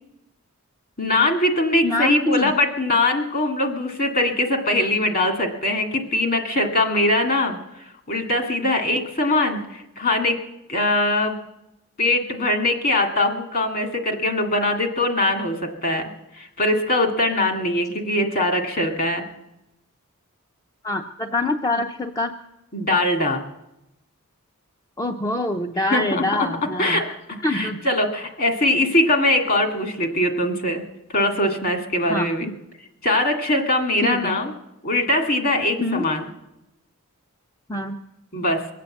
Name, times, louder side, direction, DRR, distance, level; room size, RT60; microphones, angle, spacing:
voice 1, 1.0-10.4 10.7-11.4 12.0-16.1 16.4-19.2 22.7-23.4 25.8-26.5 26.8-27.2 27.5-30.8 31.1-32.5 33.0-34.5 34.8-36.2 38.3-38.6, left 1 dB, 45° left, 5 dB, 2.2 m, -22 dB
voice 2, 1.8-2.5 20.8-22.3 25.0-27.0 27.4-27.8 32.1-32.5 34.0-34.2 35.8-36.1 37.7-38.0, left 2 dB, 15° left, 4 dB, 0.6 m, -25 dB
22.0 x 8.4 x 7.7 m, 0.89 s
head